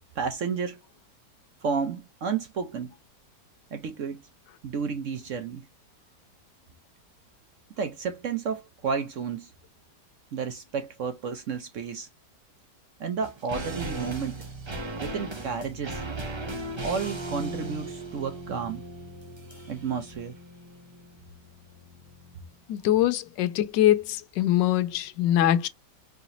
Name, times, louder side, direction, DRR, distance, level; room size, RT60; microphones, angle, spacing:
voice 1, 0.1-0.8 1.6-2.9 3.7-4.3 4.6-5.7 7.8-9.5 10.3-12.1 13.0-14.4 14.9-16.0 16.8-18.8 19.7-20.4, right 6 dB, 60° right, 0.8 m, -31 dB
sound 1, 13.2-22.6 22.8-22.9, right 1 dB, 40° right, 0.4 m, -38 dB
voice 2, 22.7-25.7, left 12 dB, 85° left, 1.2 m, -23 dB
4.9 x 2.8 x 2.6 m
omnidirectional pair, 1.9 m